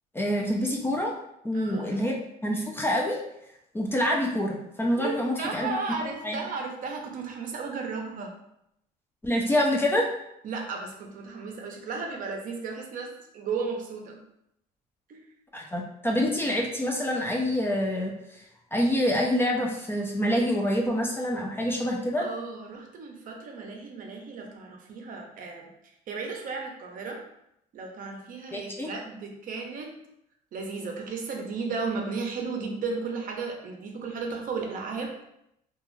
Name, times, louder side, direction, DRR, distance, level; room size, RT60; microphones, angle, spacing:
voice 1, 0.1-1.1 1.4-2.2 2.4-3.2 3.7-5.7 6.2-6.4 9.2-10.1 15.5-18.4 18.7-22.3 28.5-28.9, equal, 15° left, 0 dB, 0.4 m, -26 dB
voice 2, 1.5-2.1 4.9-8.3 10.4-14.2 15.1-15.2 22.2-25.7 26.1-27.2 27.7-29.9 30.5-35.1, right 4 dB, 55° right, 2 dB, 0.6 m, -34 dB
2.4 x 2.3 x 3.1 m, 0.79 s
cardioid pair, 110°, 17 cm